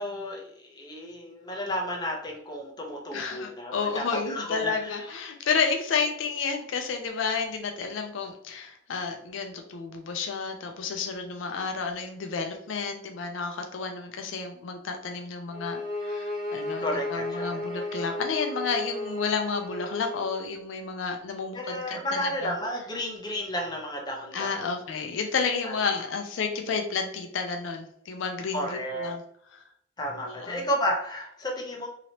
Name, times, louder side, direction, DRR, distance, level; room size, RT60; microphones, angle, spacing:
voice 1, 0.0-5.1 16.8-17.9 21.5-24.7 25.6-25.7 28.5-29.1 30.0-31.9, equal, 20° left, -1 dB, 0.7 m, -32 dB
voice 2, 3.1-16.8 17.1-22.5 24.3-29.2 29.5-29.7 30.2-30.6, left 5 dB, 75° left, 5 dB, 0.4 m, -31 dB
sound 1, 15.5-20.4, left 1 dB, 30° right, 1.4 m, -34 dB
2.9 x 2.9 x 2.8 m, 0.71 s
head